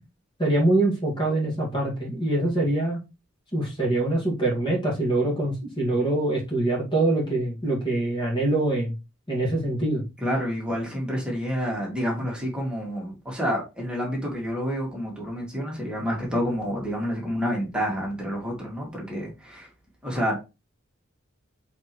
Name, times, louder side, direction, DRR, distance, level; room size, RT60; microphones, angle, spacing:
voice 1, 0.4-3.0 3.5-8.9 9.3-10.0, right 2 dB, 20° left, 1.9 m, -24 dB
voice 2, 10.2-19.7 20.0-20.4, equal, 5° right, 2.1 m, -28 dB
7.4 x 4.2 x 3.1 m
head